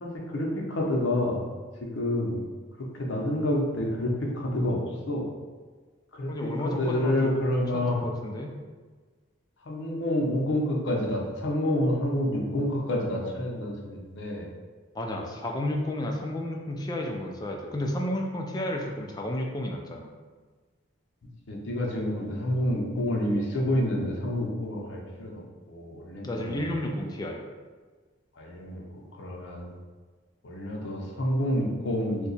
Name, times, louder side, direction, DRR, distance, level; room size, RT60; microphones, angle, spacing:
voice 1, 0.0-1.4 1.8-2.4 2.8-5.2 6.1-6.3 6.6-8.0 9.7-14.5 21.5-25.4 25.7-26.8 28.4-28.8 29.2-29.7 30.4-32.3, left 1 dB, 65° left, -1 dB, 0.6 m, -28 dB
voice 2, 6.3-7.4 7.7-8.5 14.9-20.1 26.2-27.4, left 1 dB, 20° left, 1 dB, 0.3 m, -32 dB
2.8 x 2.2 x 3.9 m, 1.4 s
head